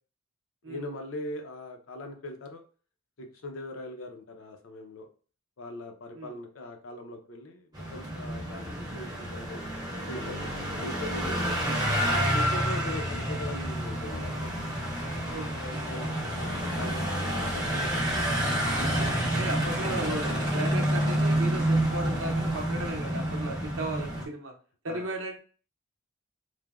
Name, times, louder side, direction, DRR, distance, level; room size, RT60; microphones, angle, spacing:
voice 1, 0.6-2.6 3.2-5.1 5.6-9.6 10.1-11.8 12.3-14.5 15.8-18.2 24.9-25.1, left 1 dB, 60° left, 4 dB, 0.5 m, -41 dB
sound 1, 7.7-24.3, right 1 dB, 20° right, 0.6 m, -29 dB
voice 2, 15.3-16.0 19.1-24.5 24.8-25.4, right 2 dB, 65° right, 3 dB, 0.6 m, -36 dB
3.2 x 2.0 x 2.3 m, 0.39 s
head